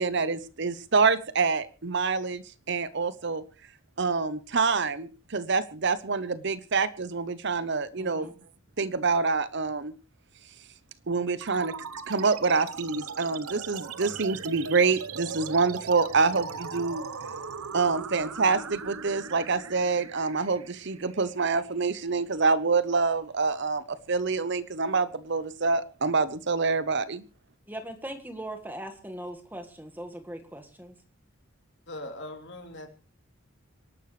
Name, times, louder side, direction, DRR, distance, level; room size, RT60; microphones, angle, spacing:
voice 1, 0.0-3.4 4.0-8.3 8.8-9.9 11.1-11.7 12.1-17.0 17.7-27.2, right 4 dB, 50° right, 0.8 m, -26 dB
voice 2, 8.0-8.3 27.7-30.9, right 1 dB, 10° right, 1.6 m, -40 dB
sound 1, 11.4-22.4, right 6 dB, 85° right, 0.9 m, -39 dB
voice 3, 31.9-32.9, left 1 dB, 55° left, 3.0 m, -40 dB
26.5 x 11.5 x 3.2 m
head